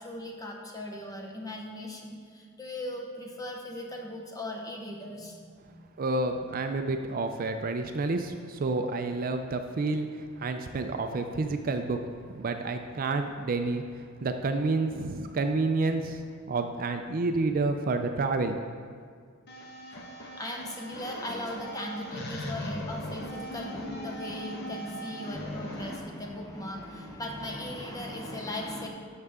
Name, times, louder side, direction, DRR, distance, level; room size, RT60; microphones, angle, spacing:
voice 1, 0.0-5.9 20.4-28.9, left 1 dB, 15° left, 1 dB, 1.0 m, -38 dB
voice 2, 6.0-10.1 10.4-12.0 12.4-13.8 14.2-16.2 16.5-18.6, right 3 dB, 40° right, 6 dB, 0.4 m, -29 dB
sound 1, 19.5-26.0, equal, 50° left, 1.1 m, -39 dB
12.5 x 6.6 x 3.6 m, 2.1 s
head